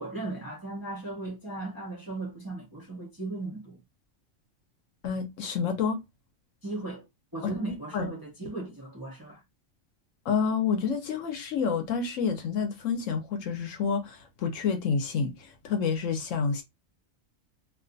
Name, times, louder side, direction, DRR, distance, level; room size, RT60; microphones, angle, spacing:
voice 1, 0.0-3.8 6.6-7.0 7.3-9.4, right 2 dB, 25° right, 0.5 m, -36 dB
voice 2, 5.0-6.0 7.4-7.5 7.9-8.1 10.3-16.6, left 6 dB, 70° left, 1.0 m, -29 dB
2.4 x 2.4 x 2.5 m
omnidirectional pair, 1.4 m